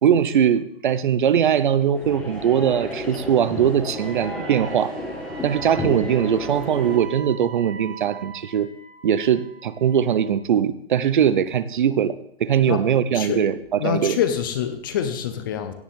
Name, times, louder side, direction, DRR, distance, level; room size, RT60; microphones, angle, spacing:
voice 1, 0.0-4.9 5.4-8.7 9.0-14.2, right 9 dB, 50° right, 16 dB, 0.7 m, -21 dB
sound 1, 1.9-7.0, left 1 dB, 5° left, 1.6 m, -32 dB
Wind instrument woodwind instrument, 3.9-10.4, right 7 dB, 75° right, 4.8 m, -42 dB
voice 2, 13.1-13.4 13.8-15.7, left 9 dB, 20° left, 9 dB, 0.7 m, -25 dB
17.0 x 10.0 x 3.7 m, 0.72 s
hypercardioid pair, 170°, 31 cm